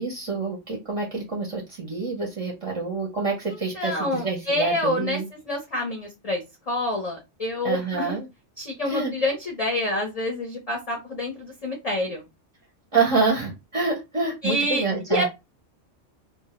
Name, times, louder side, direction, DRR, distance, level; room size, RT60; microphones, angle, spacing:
voice 1, 0.0-5.3 7.6-8.3 8.9-9.1 12.9-15.3, right 4 dB, 35° right, -1 dB, 0.5 m, -27 dB
voice 2, 3.5-5.2 5.4-8.2 8.6-12.2 14.4-14.8 15.1-15.3, left 1 dB, 40° left, -1 dB, 0.5 m, -27 dB
2.2 x 2.0 x 2.8 m, 0.23 s
omnidirectional pair, 1.2 m